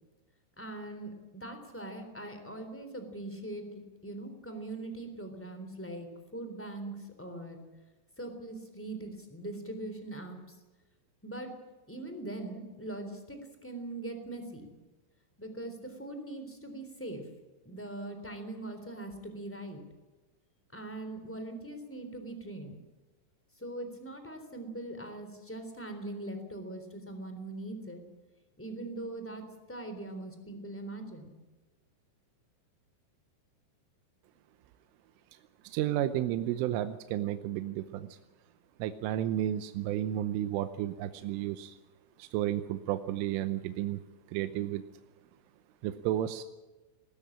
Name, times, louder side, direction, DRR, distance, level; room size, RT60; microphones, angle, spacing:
voice 1, 0.6-6.1 6.3-7.6 8.2-10.5 11.2-11.6 11.9-14.7 15.4-17.3 17.6-19.8 20.7-22.8 23.6-28.0 28.6-31.3, right 2 dB, 5° left, 6 dB, 2.4 m, -41 dB
voice 2, 35.6-38.2 38.8-41.8 42.2-44.0 44.3-44.8 45.8-46.4, right 12 dB, 80° right, 10 dB, 3.2 m, -32 dB
20.0 x 16.0 x 8.7 m, 1.2 s
omnidirectional pair, 5.8 m